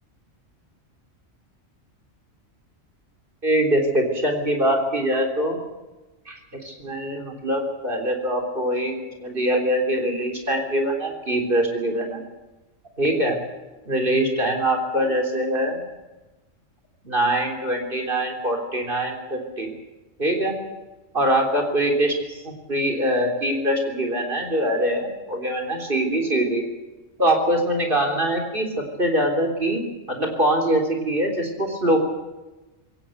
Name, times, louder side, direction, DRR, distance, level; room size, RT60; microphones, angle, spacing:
voice 1, 3.4-5.6 6.3-12.2 13.0-13.4 13.9-15.8 17.0-19.7 20.2-20.5 21.1-26.6 27.2-32.0, right 1 dB, 40° right, 2 dB, 3.8 m, -23 dB
21.5 x 18.0 x 8.0 m, 1.1 s
omnidirectional pair, 1.4 m